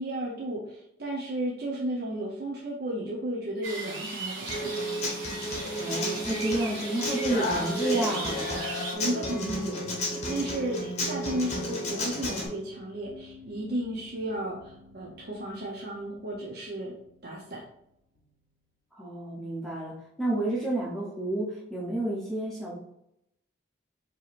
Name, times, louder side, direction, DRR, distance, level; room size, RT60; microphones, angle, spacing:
voice 1, 0.0-4.7 8.9-16.9 17.2-17.6, right 1 dB, 55° right, -4 dB, 0.6 m, -34 dB
sound 1, 3.6-9.0, right 3 dB, 80° right, 0.9 m, -38 dB
Human voice / Acoustic guitar, 4.5-12.5, equal, 35° left, 0.8 m, -32 dB
voice 2, 5.8-8.5 18.9-22.8, right 1 dB, ahead, -7 dB, 0.7 m, -30 dB
sound 2, 9.8-18.6, left 2 dB, 75° left, 0.7 m, -55 dB
4.6 x 2.8 x 2.5 m, 0.78 s
head